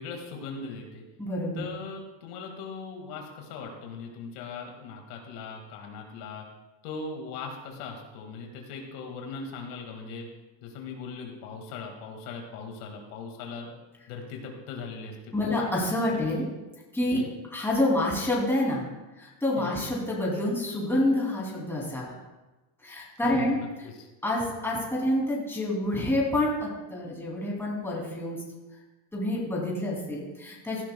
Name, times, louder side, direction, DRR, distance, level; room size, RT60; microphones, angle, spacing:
voice 1, 0.0-1.0 1.5-6.4 6.8-10.3 10.6-13.7 14.1-15.7 16.1-16.2 17.1-17.3 19.6-19.8 23.2-24.1, left 4 dB, 80° left, 2 dB, 2.1 m, -39 dB
voice 2, 1.2-1.7 15.3-16.4 16.9-17.2 17.5-18.8 19.2-22.1 22.8-23.6 24.2-28.4 29.1-30.8, left 1 dB, 5° left, -4 dB, 2.8 m, -28 dB
16.5 x 12.0 x 2.3 m, 1.1 s
cardioid pair, 130°, 46 cm